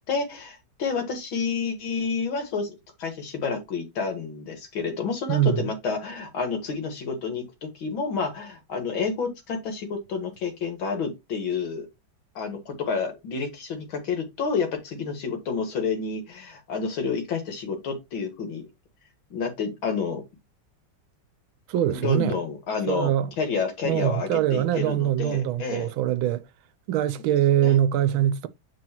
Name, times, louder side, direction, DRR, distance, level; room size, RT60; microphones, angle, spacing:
voice 1, 0.1-11.9 12.4-18.7 19.3-20.2 21.9-23.1 23.4-25.9 27.6-27.8, left 5 dB, 75° left, 2.4 m, -29 dB
voice 2, 5.3-5.6 21.7-22.4 22.9-23.3 23.8-26.4 26.9-28.5, right 11 dB, 80° right, 1.5 m, -23 dB
7.8 x 4.4 x 2.9 m
omnidirectional pair, 2.2 m